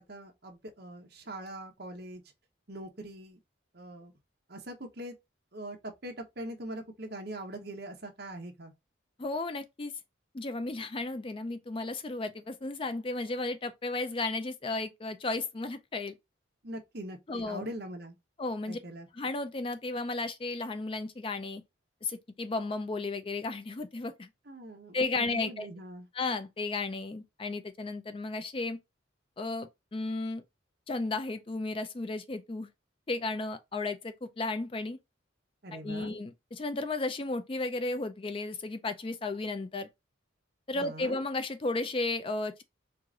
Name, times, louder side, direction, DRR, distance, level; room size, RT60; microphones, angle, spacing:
voice 1, 0.0-2.2 2.7-3.4 3.7-4.1 4.5-5.1 5.5-8.7 16.6-18.2 18.7-19.1 24.5-26.1 35.6-36.1 40.7-41.2, right 1 dB, 55° right, 1.0 m, -42 dB
voice 2, 9.2-9.9 10.3-16.1 17.3-17.7 18.4-18.8 19.2-21.6 22.0-24.3 24.9-25.7 26.1-28.8 29.4-30.4 30.9-32.7 33.1-35.0 35.7-39.9 40.7-42.6, left 3 dB, 25° left, 0.4 m, -34 dB
4.7 x 2.5 x 3.7 m
head